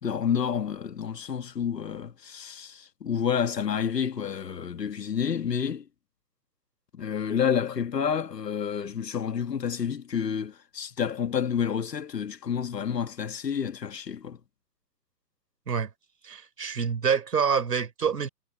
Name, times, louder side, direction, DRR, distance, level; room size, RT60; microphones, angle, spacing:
voice 1, 0.0-5.8 6.9-14.4, left 7 dB, 80° left, 1.9 m, -29 dB
voice 2, 16.2-18.3, right 6 dB, 75° right, 3.9 m, -26 dB
hypercardioid pair, 140°, 48 cm